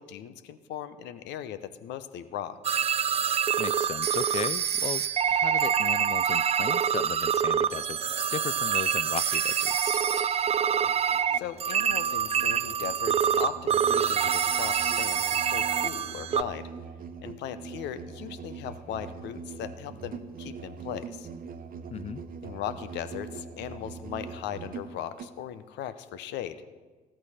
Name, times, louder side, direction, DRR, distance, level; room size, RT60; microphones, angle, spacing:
voice 1, 0.0-2.8 11.4-16.7 17.2-21.3 22.4-26.6, left 10 dB, 65° left, 12 dB, 0.8 m, -38 dB
sound 1, 2.6-16.4, right 8 dB, 35° right, 0.5 m, -26 dB
voice 2, 3.6-10.0 21.9-22.2, left 8 dB, 35° left, 20 dB, 0.4 m, -36 dB
Musical instrument, 10.7-25.4, right 5 dB, 50° right, 1.1 m, -43 dB
14.5 x 13.5 x 4.3 m, 1.4 s
hypercardioid pair, 55°, 19 cm